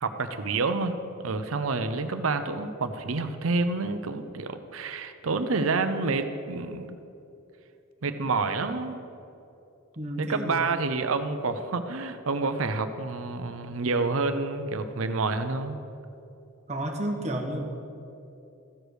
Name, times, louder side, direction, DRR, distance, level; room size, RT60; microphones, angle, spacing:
voice 1, 0.0-7.0 8.0-9.0 10.2-15.8, right 3 dB, 90° right, 9 dB, 0.7 m, -28 dB
voice 2, 10.0-10.6 11.0-11.2 16.7-17.6, right 1 dB, 35° right, 2 dB, 1.1 m, -32 dB
14.5 x 5.1 x 6.3 m, 2.8 s
head